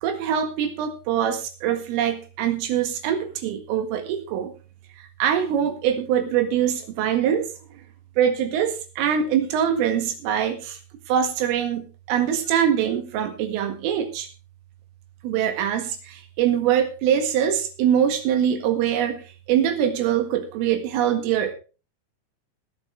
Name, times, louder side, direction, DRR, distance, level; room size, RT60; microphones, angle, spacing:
voice 1, 0.0-4.5 5.2-7.5 8.2-10.8 11.1-14.3 15.2-19.2 19.5-21.6, right 9 dB, 75° right, 7 dB, 4.3 m, -23 dB
19.5 x 9.4 x 3.3 m, 0.34 s
omnidirectional pair, 6.0 m